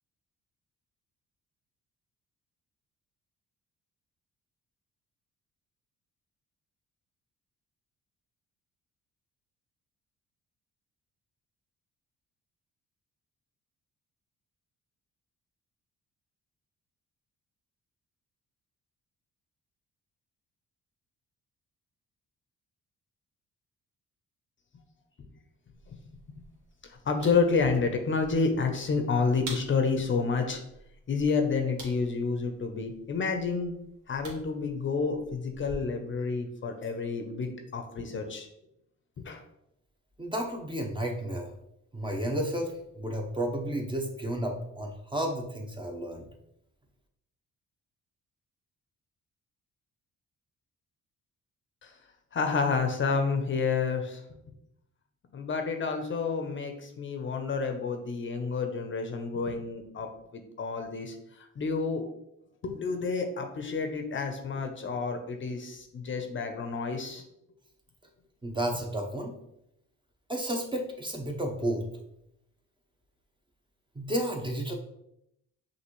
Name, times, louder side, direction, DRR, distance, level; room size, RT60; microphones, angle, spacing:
sound 1, 25.7-35.8, right 2 dB, 70° right, 1.7 m, -49 dB
voice 1, 27.1-30.6 31.1-33.7 34.1-38.5 39.2-39.4 51.8-51.9 52.3-54.2 55.3-61.2 61.6-62.0 62.6-67.2, left 4 dB, 40° left, 5 dB, 0.7 m, -29 dB
voice 2, 40.2-41.6 41.9-46.3 68.4-69.3 70.3-71.9 73.9-74.7, right 1 dB, 15° right, 2 dB, 0.8 m, -32 dB
5.7 x 2.7 x 3.1 m, 0.79 s
cardioid pair, 90°, 30 cm